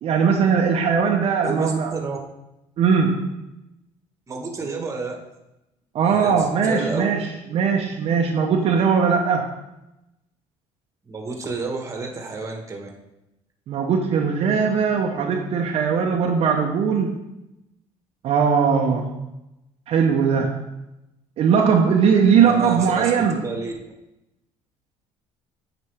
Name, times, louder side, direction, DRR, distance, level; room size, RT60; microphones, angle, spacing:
voice 1, 0.0-2.0 2.8-3.4 5.9-9.5 13.7-17.2 18.2-19.3 19.9-20.7 21.4-23.4, right 6 dB, 55° right, 1 dB, 0.7 m, -20 dB
voice 2, 1.4-2.2 4.3-5.2 6.1-7.1 11.0-12.9 22.4-23.7, right 3 dB, 25° right, 2 dB, 1.3 m, -30 dB
8.5 x 5.1 x 3.5 m, 0.91 s
cardioid pair, 110°, 12 cm